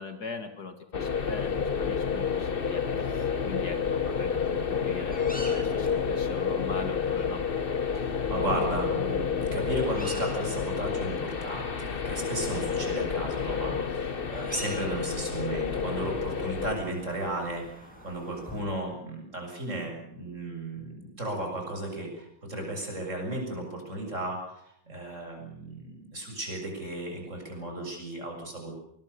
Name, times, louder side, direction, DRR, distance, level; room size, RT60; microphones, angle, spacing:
voice 1, 0.0-7.5, left 4 dB, 55° left, 8 dB, 2.3 m, -41 dB
sound 1, 0.9-16.7, left 6 dB, 35° left, 1.1 m, -30 dB
sound 2, 1.1-18.6, equal, 5° left, 6.9 m, -48 dB
voice 2, 7.9-28.8, right 1 dB, 35° right, 2 dB, 7.6 m, -35 dB
24.0 x 21.5 x 6.8 m, 0.69 s
omnidirectional pair, 2.2 m